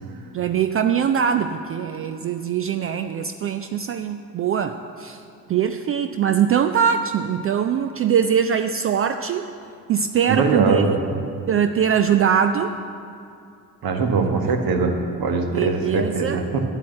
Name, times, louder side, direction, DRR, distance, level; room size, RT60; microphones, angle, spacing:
voice 1, 0.3-5.2 5.5-9.5 9.9-10.8 11.5-12.8 14.2-14.3 15.5-16.4, right 8 dB, 30° right, 9 dB, 0.4 m, -22 dB
voice 2, 10.3-11.0 13.8-16.6, right 4 dB, 50° right, 4 dB, 1.5 m, -21 dB
8.3 x 8.1 x 8.6 m, 2.6 s
figure-of-eight pair, 45°, 47 cm